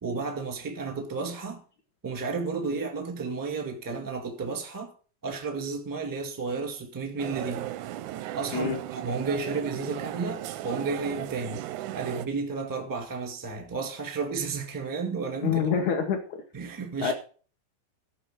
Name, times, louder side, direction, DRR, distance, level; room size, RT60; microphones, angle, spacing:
voice 1, 0.0-1.6 2.0-4.9 5.2-7.7 8.3-11.6 11.9-15.6 16.5-17.1, right 4 dB, 10° right, 1.0 m, -32 dB
sound 1, 7.2-12.3, right 13 dB, 75° right, 1.8 m, -36 dB
voice 2, 15.4-16.4 17.0-17.1, left 7 dB, 60° left, 2.4 m, -26 dB
14.0 x 5.2 x 9.1 m
omnidirectional pair, 4.4 m